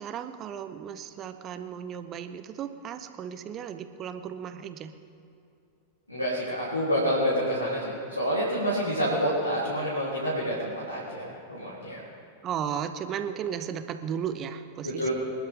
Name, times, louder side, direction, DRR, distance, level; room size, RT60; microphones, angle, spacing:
voice 1, 0.0-4.9 12.4-15.1, right 8 dB, 30° right, 9 dB, 1.0 m, -35 dB
voice 2, 6.1-12.0 14.8-15.1, equal, 85° left, -8 dB, 3.9 m, -28 dB
25.5 x 12.0 x 3.8 m, 2.6 s
figure-of-eight pair, 90°, 0 cm